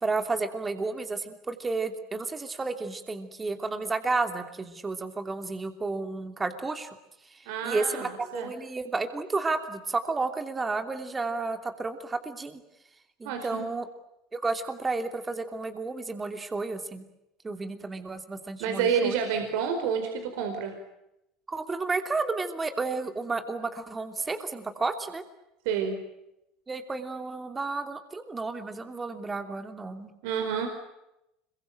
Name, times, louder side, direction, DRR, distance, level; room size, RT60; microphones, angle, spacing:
voice 1, 0.0-6.9 7.2-12.6 13.2-13.9 14.3-17.1 17.4-19.2 21.5-25.2 26.7-30.1, right 3 dB, 20° right, 7 dB, 2.9 m, -32 dB
voice 2, 7.5-8.5 13.2-13.7 18.6-20.7 25.6-26.0 30.2-30.7, right 7 dB, 75° right, 5 dB, 4.6 m, -29 dB
26.0 x 23.5 x 9.0 m, 0.87 s
hypercardioid pair, 90°, 0 cm